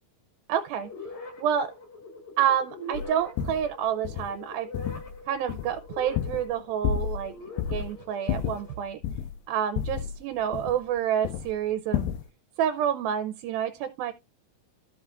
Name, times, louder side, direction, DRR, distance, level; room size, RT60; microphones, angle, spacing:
voice 1, 0.5-0.9 1.4-1.8 2.4-4.7 5.3-9.0 9.5-12.1 12.6-14.1, right 9 dB, 80° right, 2.3 m, -28 dB
sound 1, 0.8-8.8, left 2 dB, 45° left, 3.3 m, -43 dB
sound 2, 2.9-3.1 3.4-3.7 4.1-4.3 4.7-5.2 5.5-6.6 6.8-7.3 7.6-7.9 8.3-9.4 9.8-11.0 11.3-11.5 11.9-12.3, left 9 dB, 85° left, 2.6 m, -31 dB
15.0 x 5.5 x 2.4 m
omnidirectional pair, 4.6 m